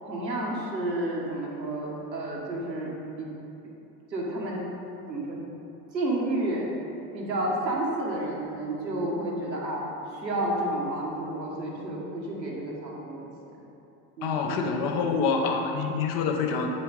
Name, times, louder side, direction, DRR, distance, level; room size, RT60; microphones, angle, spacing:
voice 1, 0.0-2.9 3.2-3.3 4.1-4.7 5.1-5.4 5.9-6.6 7.1-13.6 14.2-15.2, right 1 dB, 85° right, -3 dB, 1.4 m, -31 dB
voice 2, 14.2-16.7, left 5 dB, 45° left, 3 dB, 1.0 m, -26 dB
8.4 x 5.5 x 4.0 m, 2.8 s
figure-of-eight pair, 75°, 50 cm